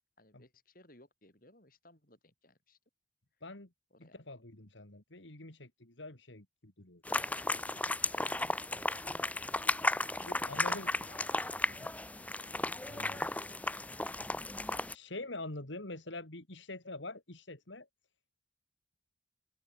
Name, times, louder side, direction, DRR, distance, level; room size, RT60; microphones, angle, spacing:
voice 1, 0.2-2.8 3.9-4.2 7.2-9.4 9.9-11.2 11.6-12.0 12.4-13.0 13.6-13.7, left 1 dB, 45° left, 6.5 m, -63 dB
voice 2, 4.0-7.0 10.2-10.9 11.7-11.9 12.9-13.2 14.8-17.9, left 2 dB, 75° left, 3.2 m, -45 dB
sound 1, 7.1-14.9, left 2 dB, 10° left, 0.5 m, -34 dB
open air
head